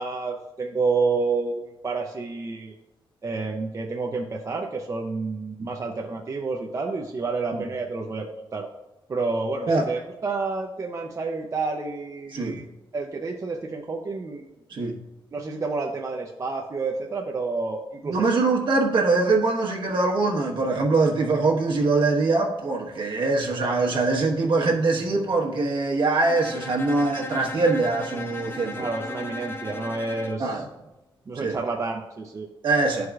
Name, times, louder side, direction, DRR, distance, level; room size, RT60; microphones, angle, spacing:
voice 1, 0.0-2.7 3.2-8.7 9.1-14.4 15.3-18.2 28.8-30.6 31.3-32.5, right 3 dB, 35° right, 1 dB, 0.6 m, -29 dB
voice 2, 18.0-28.9 30.4-30.7 31.4-31.6 32.6-33.1, right 3 dB, 65° right, 0 dB, 1.3 m, -23 dB
Bowed string instrument, 26.2-30.4, left 2 dB, 25° left, 0.6 m, -36 dB
12.5 x 4.7 x 2.4 m, 1.0 s
wide cardioid pair, 115°, 9 cm